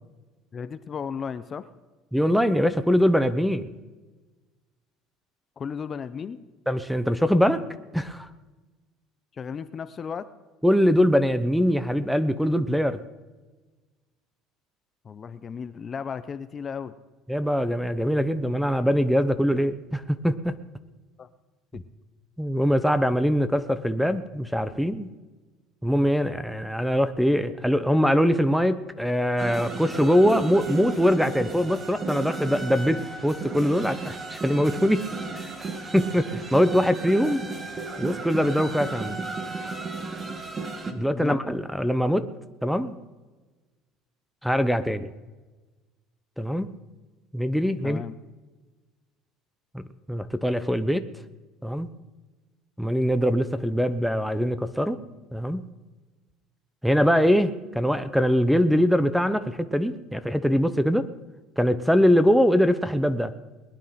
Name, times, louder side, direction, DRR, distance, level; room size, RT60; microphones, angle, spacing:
voice 1, 0.5-1.7 5.6-6.4 9.3-10.3 15.0-16.9 21.2-21.3 21.7-21.8 41.1-41.4 47.8-48.2, left 6 dB, 30° left, 12 dB, 0.7 m, -34 dB
voice 2, 2.1-3.7 6.7-7.6 7.9-8.3 10.6-13.0 17.3-20.5 21.7-21.8 22.4-25.1 25.8-35.1 35.3-35.7 35.9-37.5 38.0-39.2 40.9-42.3 42.6-43.0 44.4-45.1 46.4-46.7 47.3-48.0 49.7-49.8 50.1-51.1 51.6-51.9 52.8-55.0 55.3-55.6 56.8-61.1 61.6-63.3, equal, ahead, 14 dB, 0.8 m, -23 dB
sound 1, 29.4-40.9, right 3 dB, 25° right, 1.6 m, -34 dB
20.5 x 10.0 x 5.8 m, 1.3 s
cardioid pair, 120°, 0 cm